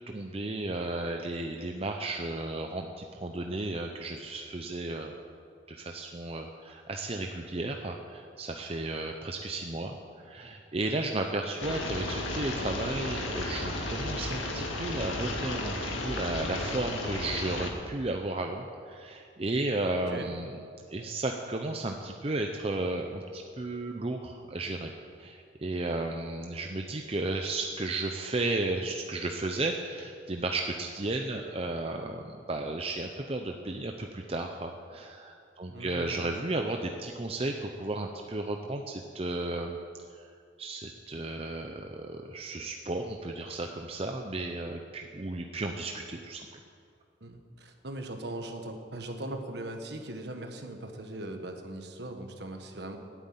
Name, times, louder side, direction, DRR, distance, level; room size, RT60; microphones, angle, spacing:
voice 1, 0.1-5.2 5.7-20.6 20.9-24.9 25.2-39.8 40.1-40.2 40.6-46.5, right 2 dB, 30° right, 3 dB, 0.6 m, -34 dB
sound 1, 11.6-17.7, left 2 dB, 90° left, 2.0 m, -34 dB
voice 2, 35.7-36.3 47.2-53.0, right 1 dB, 55° right, 4 dB, 1.4 m, -39 dB
12.0 x 9.2 x 9.1 m, 2.4 s
head